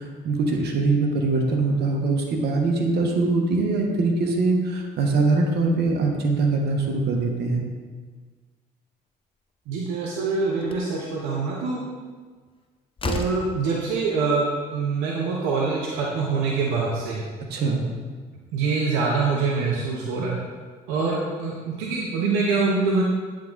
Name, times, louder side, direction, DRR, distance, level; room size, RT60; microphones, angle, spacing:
voice 1, 0.0-7.6 17.5-17.8, right 3 dB, 65° right, 2 dB, 1.1 m, -22 dB
voice 2, 9.7-11.8 13.0-17.2 18.5-20.4 20.9-23.0, right 4 dB, 85° right, -2 dB, 0.8 m, -24 dB
Slam, 10.6-10.9 12.5-12.6 13.0-13.5, left 2 dB, 30° left, 0.7 m, -30 dB
8.7 x 3.7 x 3.8 m, 1.5 s
supercardioid pair, 65°, 18 cm